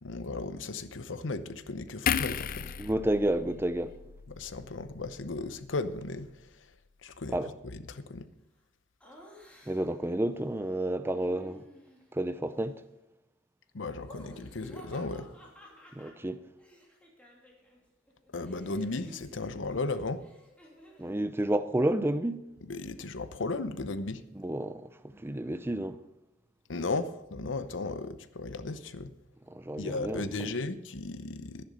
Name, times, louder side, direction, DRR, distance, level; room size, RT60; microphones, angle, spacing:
voice 1, 0.0-2.7 4.3-6.7 7.0-8.3 13.7-15.4 18.3-20.3 22.6-24.2 26.7-29.1 29.8-31.6, left 3 dB, 80° left, 0.8 m, -36 dB
sound 1, 2.1-5.4 5.8-6.0, left 8 dB, 50° left, 0.4 m, -35 dB
voice 2, 2.8-3.9 7.3-7.5 9.7-11.6 12.1-12.8 15.9-16.4 21.0-22.4 24.4-26.0 29.5-30.2, right 1 dB, 10° right, 0.5 m, -30 dB
Laughter, 9.0-10.0 11.1-12.1 13.9-17.8 18.1-21.2, equal, 5° left, 2.8 m, -54 dB
11.5 x 10.5 x 5.3 m
head